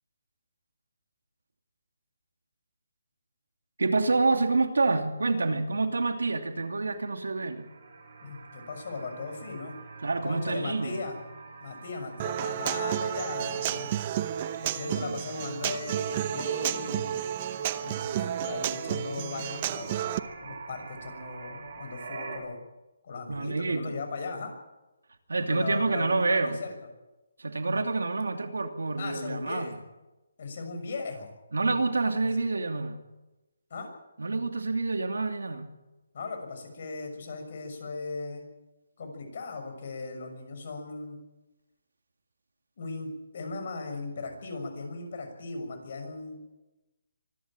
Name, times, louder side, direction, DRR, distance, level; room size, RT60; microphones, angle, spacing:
voice 1, 3.8-7.7 10.0-11.0 15.0-15.2 23.3-24.0 25.3-26.6 27.4-29.7 31.5-33.0 34.2-35.7, right 3 dB, 85° right, 6 dB, 2.7 m, -27 dB
sound 1, 7.3-22.4, right 4 dB, 50° right, 7.5 m, -46 dB
voice 2, 8.2-9.8 10.2-11.2 11.6-13.9 14.6-20.1 20.4-22.6 23.0-24.5 25.4-26.7 29.0-29.8 30.4-31.3 33.7-33.9 36.1-38.5 39.0-41.2 42.8-46.6, left 3 dB, 50° left, 4 dB, 6.6 m, -38 dB
Human voice / Acoustic guitar, 12.2-20.2, right 11 dB, 30° right, 0.8 m, -31 dB
25.0 x 12.5 x 9.1 m, 1.0 s
hypercardioid pair, 160°, 0 cm